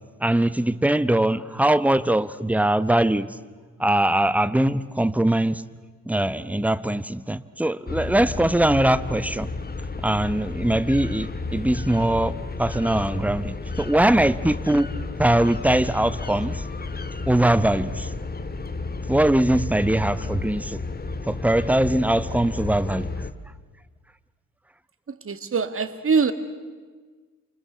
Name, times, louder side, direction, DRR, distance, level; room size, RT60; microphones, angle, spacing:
voice 1, 0.2-3.3 3.8-5.6 6.1-9.5 10.0-14.9 15.2-16.6 17.3-18.1 19.1-20.8 21.3-23.1, right 1 dB, 5° right, 1.1 m, -21 dB
sound 1, 7.9-23.3, left 3 dB, 20° left, 1.8 m, -32 dB
voice 2, 25.1-26.3, right 5 dB, 30° right, 2.2 m, -23 dB
28.0 x 24.5 x 8.0 m
hypercardioid pair, 50°, 43 cm